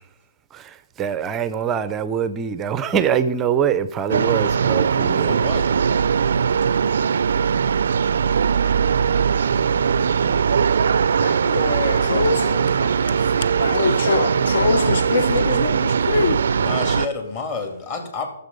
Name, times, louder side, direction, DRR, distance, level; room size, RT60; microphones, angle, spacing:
voice 1, 0.5-5.3, right 8 dB, 15° right, 0.5 m, -23 dB
sound 1, 4.1-17.1, right 6 dB, 65° right, 0.4 m, -20 dB
voice 2, 5.2-5.7 16.5-18.3, left 4 dB, 30° left, 2.3 m, -29 dB
voice 3, 9.6-10.5 11.1-14.9, left 3 dB, 80° left, 2.3 m, -31 dB
voice 4, 12.1-12.5 13.7-16.5, left 4 dB, 55° left, 0.7 m, -23 dB
14.5 x 7.2 x 5.3 m
hypercardioid pair, 165°, 0 cm